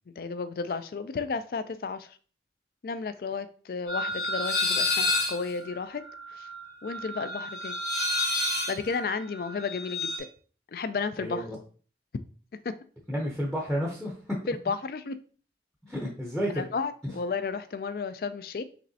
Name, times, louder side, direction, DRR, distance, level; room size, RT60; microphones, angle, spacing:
voice 1, 0.2-2.2 2.8-6.0 6.3-6.5 6.8-7.8 8.7-10.2 10.7-11.5 12.6-12.8 14.5-15.2 16.5-18.6, left 4 dB, 55° left, 12 dB, 0.3 m, -33 dB
sound 1, 3.9-10.2, left 2 dB, 75° left, 2.1 m, -29 dB
voice 2, 13.1-14.4 15.8-16.6 17.0-17.1, equal, 5° left, -2 dB, 0.6 m, -31 dB
5.3 x 3.1 x 2.7 m, 0.41 s
head